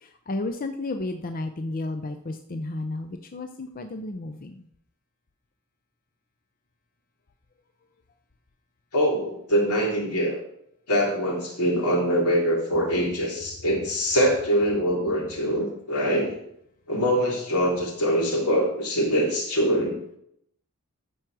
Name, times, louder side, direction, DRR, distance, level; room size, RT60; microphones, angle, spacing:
voice 1, 0.0-4.6, left 2 dB, 40° left, 6 dB, 0.6 m, -32 dB
voice 2, 8.9-10.4 10.9-16.3 16.9-19.9, equal, 85° left, -2 dB, 3.4 m, -23 dB
14.0 x 4.7 x 6.2 m, 0.74 s
head